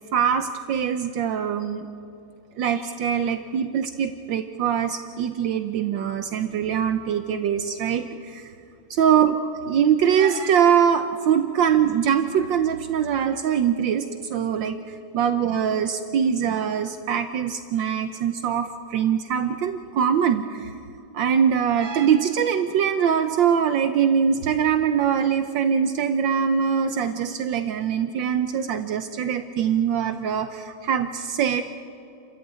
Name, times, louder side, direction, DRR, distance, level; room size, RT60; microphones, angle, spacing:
voice 1, 0.1-1.9 2.6-8.5 8.9-20.7 21.1-31.6, right 8 dB, 75° right, 8 dB, 1.5 m, -23 dB
29.5 x 14.0 x 9.3 m, 2.8 s
omnidirectional pair, 2.1 m